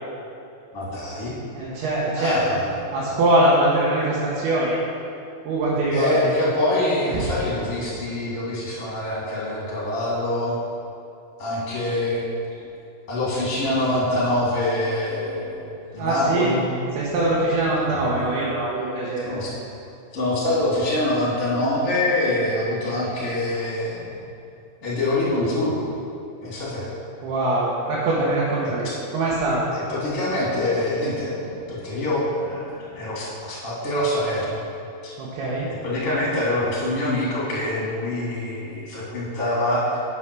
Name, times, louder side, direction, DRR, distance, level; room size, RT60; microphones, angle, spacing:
voice 1, 0.7-1.3 2.1-2.9 5.9-10.6 11.4-12.2 13.1-16.7 17.9-18.3 19.2-19.5 20.1-24.2 24.8-25.8 26.4-26.9 28.8-29.0 29.7-34.6 35.0-35.1 35.7-40.0, left 1 dB, 25° left, -6 dB, 2.0 m, -25 dB
voice 2, 1.5-2.6 2.9-4.8 5.5-6.3 7.1-7.2 16.0-16.5 16.9-19.4 27.2-28.9 29.1-29.7 35.2-35.7, right 1 dB, 85° right, -7 dB, 3.2 m, -22 dB
7.8 x 6.2 x 6.1 m, 2.6 s
omnidirectional pair, 4.4 m